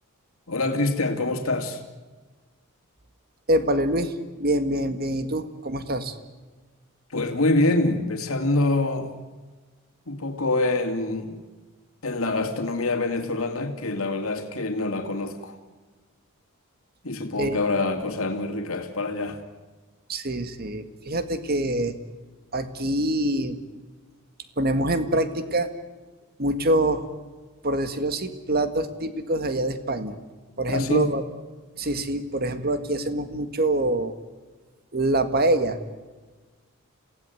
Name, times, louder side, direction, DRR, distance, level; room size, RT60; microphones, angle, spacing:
voice 1, 0.5-1.8 7.1-9.1 10.1-11.4 12.0-15.6 17.0-19.4 30.7-31.1, left 2 dB, 80° left, 5 dB, 2.6 m, -25 dB
voice 2, 3.5-6.2 17.4-17.6 20.1-22.0 22.5-23.6 24.6-25.7 26.4-27.0 27.6-30.2 30.6-31.2 31.8-34.1 34.9-35.8, right 1 dB, 45° right, 10 dB, 1.9 m, -25 dB
27.5 x 17.0 x 9.4 m, 1.3 s
head